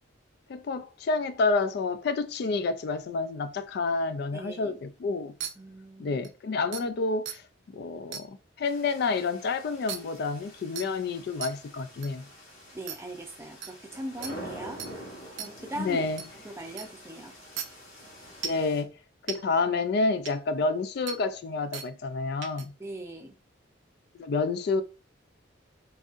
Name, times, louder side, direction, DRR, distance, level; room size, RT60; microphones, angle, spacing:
voice 1, 0.5-5.3 6.0-7.4 7.7-12.2 15.8-16.2 18.4-18.9 19.3-22.7 24.2-24.8, left 3 dB, 55° left, 0.3 m, -29 dB
voice 2, 4.3-4.8 5.6-6.2 12.7-14.8 15.4-16.0 16.4-17.3 22.8-23.3, right 1 dB, 15° right, 0.5 m, -39 dB
sound 1, 5.4-5.5 6.2-6.3 6.7-6.8 7.3-7.4 8.1-8.2 9.9-10.0 10.8-10.9 11.4-11.5 12.0-12.1 12.9-13.0 13.6-13.7 14.2-14.3 14.8-14.9 15.4-15.5 16.2-16.3 16.8-16.9 17.6-17.7 18.4-18.6 19.3-19.4 20.3-20.4 21.1-21.2 21.7-21.9 22.4-22.6, right 8 dB, 65° right, 0.5 m, -35 dB
sound 2, 8.6-18.8, equal, 80° left, 1.3 m, -46 dB
3.9 x 3.6 x 2.4 m
head